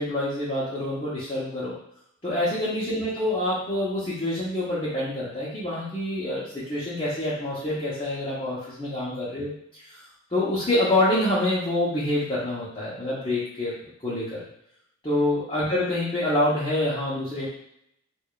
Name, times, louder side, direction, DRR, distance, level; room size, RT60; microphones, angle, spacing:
voice 1, 0.0-1.7 2.2-10.0 10.3-13.7 14.0-14.4 15.0-17.5, left 1 dB, 25° left, -10 dB, 0.9 m, -26 dB
4.7 x 2.5 x 2.4 m, 0.74 s
head